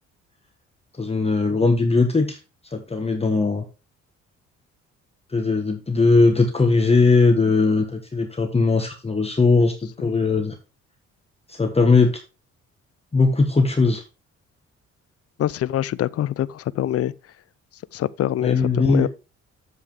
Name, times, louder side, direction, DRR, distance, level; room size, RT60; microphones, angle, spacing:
voice 1, 1.0-2.4 2.7-3.6 5.3-10.6 11.5-12.1 13.1-14.0 18.4-19.1, left 3 dB, 20° left, 1.3 m, -19 dB
voice 2, 15.4-17.1 17.9-19.1, left 12 dB, 50° left, 0.5 m, -24 dB
8.1 x 7.7 x 3.6 m
cardioid pair, 90°, 30 cm